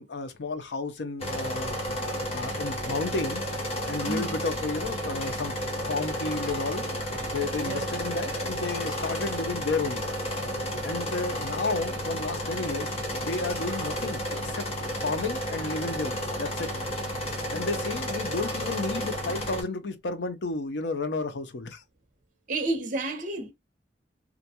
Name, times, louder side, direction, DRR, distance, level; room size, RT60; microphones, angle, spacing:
voice 1, 0.0-1.8 2.3-3.5 3.9-5.5 5.9-6.9 7.3-10.1 10.8-14.7 15.0-16.7 17.5-21.8, left 3 dB, 70° left, 0.6 m, -32 dB
sound 1, 1.2-19.6, equal, 35° left, 0.9 m, -32 dB
voice 2, 4.0-4.4 7.6-7.9 22.5-23.5, right 2 dB, 50° right, 0.7 m, -30 dB
2.5 x 2.2 x 2.7 m
head